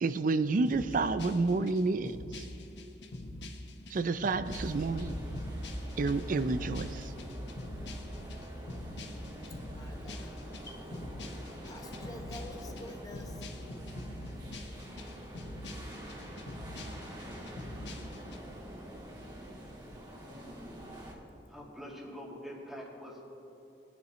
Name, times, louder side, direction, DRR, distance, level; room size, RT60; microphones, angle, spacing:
voice 1, 0.0-2.5 3.9-5.1 6.0-7.1, right 3 dB, 50° right, 12 dB, 0.4 m, -30 dB
sound 1, 0.6-18.4, left 1 dB, 85° left, 1.1 m, -44 dB
sound 2, 4.4-21.1, equal, 25° right, 1.8 m, -44 dB
voice 2, 9.6-10.4 10.7-10.8 11.5-13.4, left 1 dB, 20° left, 2 dB, 1.0 m, -48 dB
voice 3, 21.5-23.2, equal, ahead, -4 dB, 2.3 m, -44 dB
20.0 x 10.5 x 3.1 m, 3.0 s
head